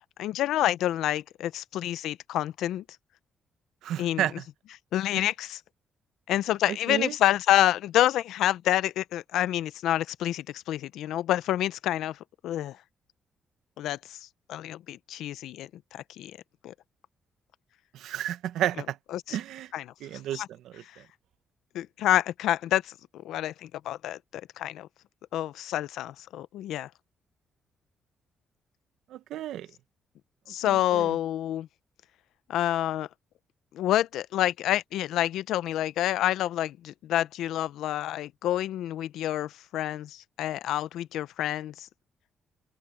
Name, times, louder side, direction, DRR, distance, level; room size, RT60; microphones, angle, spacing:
voice 1, 0.2-2.8 4.0-4.3 4.9-5.6 6.3-12.2 12.4-12.8 13.8-14.2 14.5-16.4 16.6-16.7 19.1-19.4 19.7-19.8 20.3-20.5 21.7-24.9 25.3-26.9 30.5-31.7 32.5-33.1 33.7-41.9, left 13 dB, 85° left, 0.7 m, -28 dB
voice 2, 3.8-4.3 6.7-7.2 17.9-19.0 19.3-19.7 20.0-21.0 29.1-29.7 30.6-31.2, right 12 dB, 80° right, 1.0 m, -32 dB
open air
cardioid pair, 90°, 0 cm